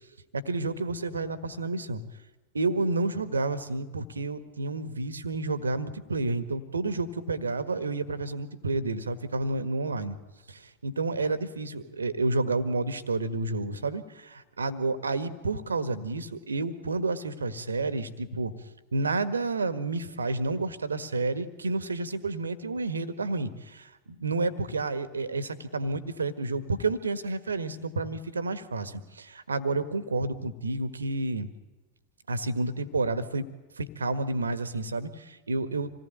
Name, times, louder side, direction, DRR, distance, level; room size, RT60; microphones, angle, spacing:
voice 1, 0.3-2.0 2.5-10.1 10.5-18.5 18.9-23.9 24.2-31.5 32.3-33.5 33.8-35.9, right 3 dB, 75° right, 11 dB, 1.7 m, -30 dB
27.0 x 18.5 x 9.2 m, 1.2 s
figure-of-eight pair, 90°, 0 cm